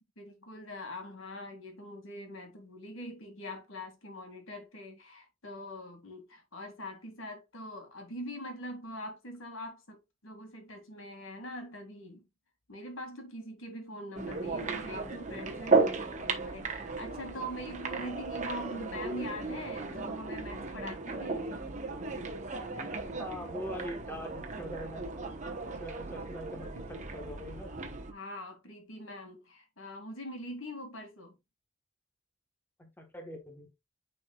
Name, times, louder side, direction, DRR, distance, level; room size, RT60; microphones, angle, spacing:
voice 1, 0.2-12.3 12.7-21.5 28.1-31.4, equal, 85° left, 2.2 m, -43 dB
sound 1, 14.1-28.1, right 3 dB, 35° right, 1.0 m, -35 dB
voice 2, 23.2-25.0 25.8-27.7 32.8-33.7, equal, 10° left, 1.2 m, -42 dB
9.4 x 4.5 x 2.3 m
head